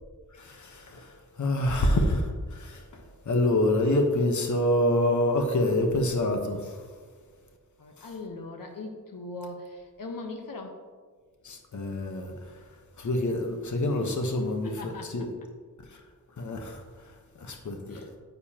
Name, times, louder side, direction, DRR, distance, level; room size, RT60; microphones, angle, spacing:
voice 1, 0.4-1.1 1.4-3.0 3.3-6.8 8.0-8.1 11.4-12.3 13.0-15.3 16.4-16.8 17.4-18.1, left 1 dB, 60° left, 3 dB, 1.1 m, -26 dB
voice 2, 7.8-10.8 14.6-15.2 17.9-18.1, left 2 dB, 80° left, 3 dB, 1.1 m, -40 dB
9.7 x 9.4 x 2.9 m, 1.5 s
wide cardioid pair, 145°, 33 cm